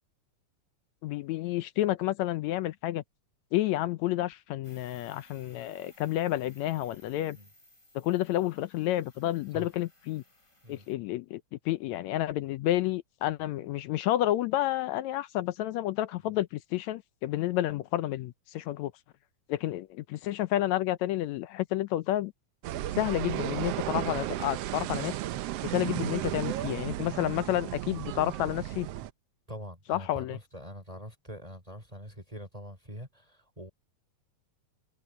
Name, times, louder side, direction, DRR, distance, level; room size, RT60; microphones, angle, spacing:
voice 1, 1.0-3.0 3.5-7.4 8.0-10.2 10.7-18.9 19.5-22.3 23.0-25.2 25.6-28.9 29.9-30.4, left 14 dB, 75° left, 1.8 m, -30 dB
sound 1, 4.6-10.9, left 1 dB, 25° left, 8.0 m, -60 dB
sound 2, 22.6-29.1, right 14 dB, 75° right, 1.5 m, -34 dB
voice 2, 29.5-33.7, equal, 10° right, 3.9 m, -44 dB
omnidirectional pair, 3.4 m